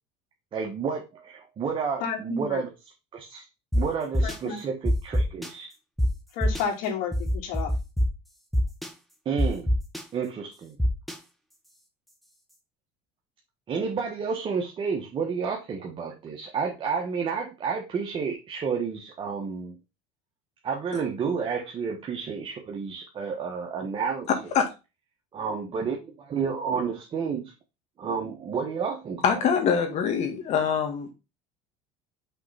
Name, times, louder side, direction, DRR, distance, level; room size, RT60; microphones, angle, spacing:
voice 1, 0.5-2.7 3.1-3.4 3.7-5.7 9.2-9.7 10.1-10.8 13.7-19.8 20.6-24.3 25.3-27.5 28.0-29.4, right 6 dB, 35° right, 1.4 m, -30 dB
voice 2, 2.0-2.6 4.2-4.6 6.3-7.7, left 6 dB, 70° left, 2.6 m, -31 dB
sound 1, 3.7-3.8 4.1-4.4 4.9-5.5 6.0-6.1 6.4-6.6 7.1-8.1 8.5-8.9 9.4-10.0 10.8-11.1, equal, ahead, 1.5 m, -23 dB
voice 3, 29.2-31.1, left 7 dB, 50° left, 2.0 m, -24 dB
5.9 x 3.8 x 5.6 m
supercardioid pair, 120°, 15 cm